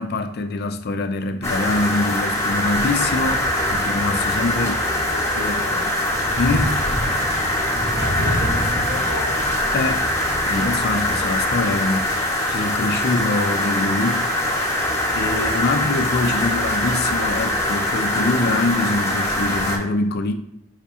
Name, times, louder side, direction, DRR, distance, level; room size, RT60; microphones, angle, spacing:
voice 1, 0.0-4.8 5.4-5.6 6.4-6.8 9.7-10.0 10.5-12.1 12.5-14.3 15.1-20.3, left 2 dB, 55° left, 0.4 m, -24 dB
sound 1, 1.4-19.8, left 1 dB, 15° left, 0.9 m, -22 dB
voice 2, 4.5-5.9 7.9-9.5 11.4-11.5, left 1 dB, 60° right, 1.4 m, -33 dB
5.0 x 2.8 x 3.5 m
head